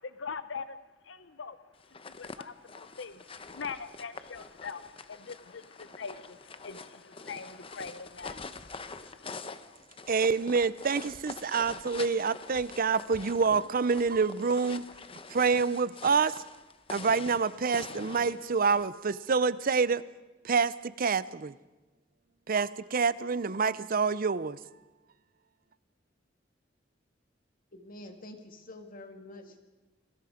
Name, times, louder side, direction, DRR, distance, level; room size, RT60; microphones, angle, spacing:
voice 1, 0.2-0.7 1.1-1.6 2.2-4.8 5.1-9.3, left 5 dB, 75° left, 13 dB, 0.8 m, -42 dB
sound 1, 1.8-18.9, left 4 dB, 30° left, 0.9 m, -45 dB
voice 2, 10.1-14.8 15.3-16.4 16.9-20.1 20.4-21.6 22.5-24.6, right 5 dB, 50° right, 17 dB, 0.6 m, -27 dB
voice 3, 27.7-29.6, left 1 dB, 50° left, 5 dB, 2.5 m, -47 dB
29.5 x 20.0 x 5.1 m, 1.1 s
head